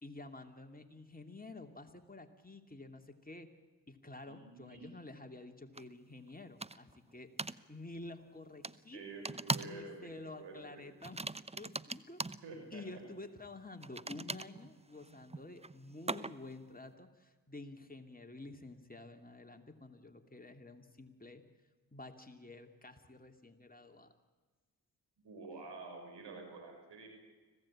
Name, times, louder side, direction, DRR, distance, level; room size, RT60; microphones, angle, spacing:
voice 1, 0.0-3.5 3.9-7.3 7.7-9.0 9.6-11.2 11.6-12.2 12.7-21.4 21.9-24.1, left 2 dB, 20° left, 5 dB, 2.8 m, -50 dB
voice 2, 4.3-4.9 8.9-10.8 12.4-13.0 25.2-27.1, right 3 dB, 85° right, 4 dB, 6.5 m, -49 dB
sound 1, 5.8-5.9 6.6-7.0 7.4-7.6 8.6-8.8 9.2-9.8 10.1-10.4 11.0-12.4 13.8-16.6, right 3 dB, 15° right, 0.8 m, -40 dB
25.5 x 17.0 x 8.7 m, 1.3 s
supercardioid pair, 45°, 41 cm